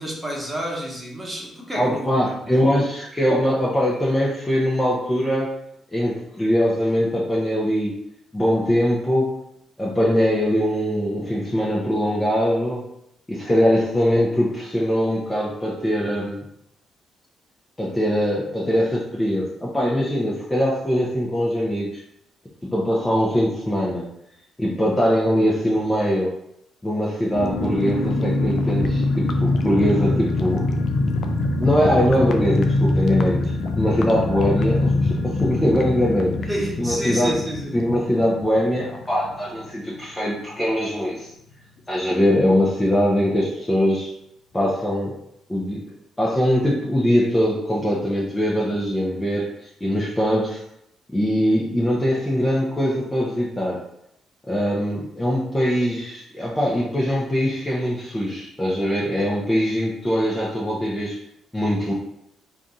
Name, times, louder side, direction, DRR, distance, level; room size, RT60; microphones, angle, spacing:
voice 1, 0.0-2.4 36.5-37.8, right 1 dB, 15° right, -2 dB, 1.2 m, -29 dB
voice 2, 1.7-5.5 5.9-7.9 8.3-9.3 9.8-12.8 13.3-16.5 17.8-22.0 22.7-24.0 24.6-26.3 26.8-30.7 31.6-33.5 33.8-36.5 36.8-37.4 37.7-41.3 41.9-44.1 44.5-45.2 45.5-50.6 51.1-53.8 54.5-61.2 61.5-61.9, equal, 20° left, -5 dB, 0.7 m, -22 dB
sound 1, 27.3-39.7 40.0-40.1 40.3-40.6, left 2 dB, 60° left, 0.4 m, -24 dB
2.5 x 2.4 x 4.0 m, 0.76 s
hypercardioid pair, 50°, 0 cm